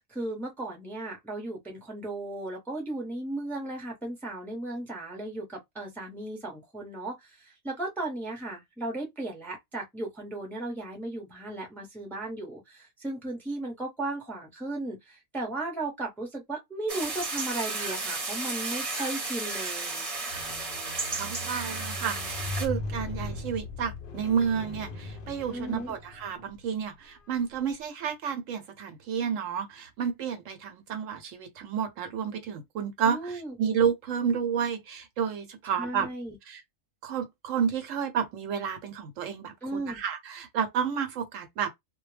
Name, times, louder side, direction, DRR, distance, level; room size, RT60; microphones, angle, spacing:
voice 1, 0.0-20.1 25.5-25.9 33.0-33.6 35.6-36.4 39.6-40.0, right 2 dB, ahead, 0.6 m, -36 dB
sound 1, 16.9-22.7, right 3 dB, 30° right, 0.8 m, -33 dB
Squeak, 20.3-26.7 27.4-27.5, left 2 dB, 55° left, 0.6 m, -38 dB
voice 2, 21.1-36.1 36.5-36.6 37.0-41.7, right 7 dB, 70° right, 0.9 m, -31 dB
2.2 x 2.1 x 3.2 m
omnidirectional pair, 1.5 m